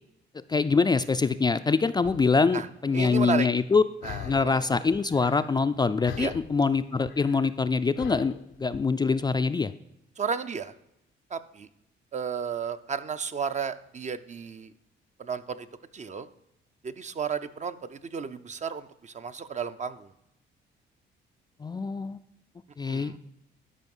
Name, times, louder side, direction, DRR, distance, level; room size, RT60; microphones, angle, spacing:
voice 1, 0.5-3.8 4.2-9.7 21.6-22.2 22.8-23.2, left 4 dB, 20° left, 10 dB, 0.4 m, -24 dB
sound 1, 2.0-2.3 2.9-3.1 4.0-4.7 4.9-5.8 6.0-8.8, left 11 dB, 80° left, 0.6 m, -42 dB
voice 2, 2.9-3.5 4.0-4.6 6.2-6.3 10.2-10.7 11.3-11.7 12.1-14.7 15.2-15.7 15.9-16.3 16.8-20.1 22.9-23.2, right 6 dB, 35° right, 11 dB, 0.6 m, -33 dB
12.5 x 5.3 x 5.5 m, 0.83 s
cardioid pair, 90°, 20 cm